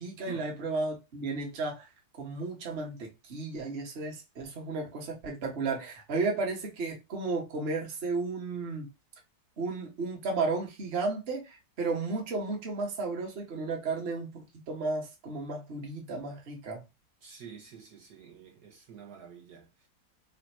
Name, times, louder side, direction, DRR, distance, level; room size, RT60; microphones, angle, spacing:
voice 1, 0.0-1.9 2.2-8.9 9.6-16.8, right 3 dB, 40° right, 1.1 m, -33 dB
voice 2, 17.2-19.9, right 6 dB, 65° right, 1.4 m, -48 dB
3.4 x 2.5 x 4.1 m
omnidirectional pair, 2.0 m